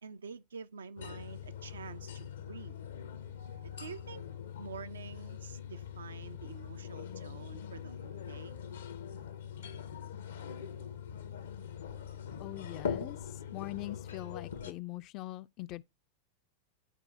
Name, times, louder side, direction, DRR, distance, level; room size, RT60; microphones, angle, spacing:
voice 1, 0.0-2.8 3.6-4.2 4.6-8.6, right 6 dB, 70° right, 0.4 m, -47 dB
sound 1, 1.0-14.7, left 8 dB, 65° left, 0.7 m, -42 dB
voice 2, 12.4-13.2 13.5-15.8, left 17 dB, 40° left, 0.4 m, -42 dB
11.0 x 4.3 x 2.6 m
figure-of-eight pair, 90°, 0 cm